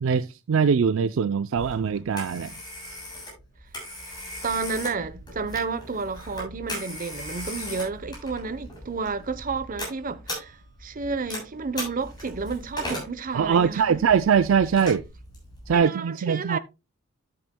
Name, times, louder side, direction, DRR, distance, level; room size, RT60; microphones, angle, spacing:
voice 1, 0.0-2.5 13.3-15.0 15.7-16.6, right 6 dB, 65° right, 0.4 m, -22 dB
Telephone, 1.6-15.8, left 1 dB, 20° left, 7.1 m, -39 dB
voice 2, 4.4-14.0 15.7-16.6, right 4 dB, 40° right, 0.8 m, -31 dB
13.5 x 8.8 x 2.2 m
head